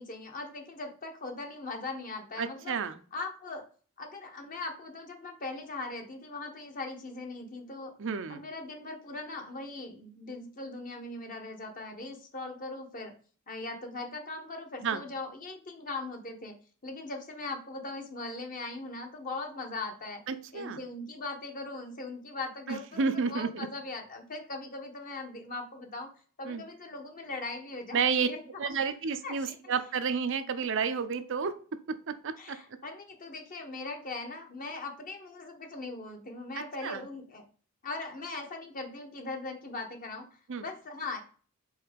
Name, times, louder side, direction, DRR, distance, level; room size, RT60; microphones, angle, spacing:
voice 1, 0.0-2.8 3.1-3.6 4.0-7.9 8.3-13.1 13.5-16.5 16.8-20.2 20.5-26.1 26.4-28.4 28.8-28.9 29.2-29.6 32.4-37.4 37.8-41.2, left 3 dB, 40° left, 4 dB, 1.1 m, -40 dB
voice 2, 2.4-3.0 8.0-8.4 14.8-15.0 20.3-20.8 22.7-23.7 26.4-26.6 27.9-28.3 28.6-31.5 31.9-32.6 36.8-37.0 40.5-40.6, right 5 dB, 55° right, 9 dB, 0.5 m, -31 dB
4.7 x 3.9 x 5.1 m, 0.42 s
head